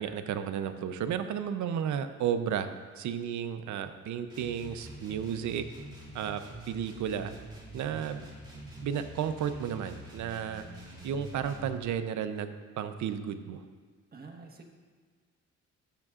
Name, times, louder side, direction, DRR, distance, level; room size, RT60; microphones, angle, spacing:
voice 1, 0.0-5.6 6.1-6.4 6.7-7.3 7.7-8.2 8.8-10.6 11.0-13.6, right 8 dB, 70° right, 9 dB, 0.7 m, -33 dB
sound 1, 4.3-11.8, right 1 dB, 15° right, 2.8 m, -46 dB
voice 2, 14.1-14.7, right 4 dB, 30° right, 1 dB, 1.3 m, -47 dB
13.5 x 7.5 x 2.5 m, 1.5 s
cardioid pair, 90°, 30 cm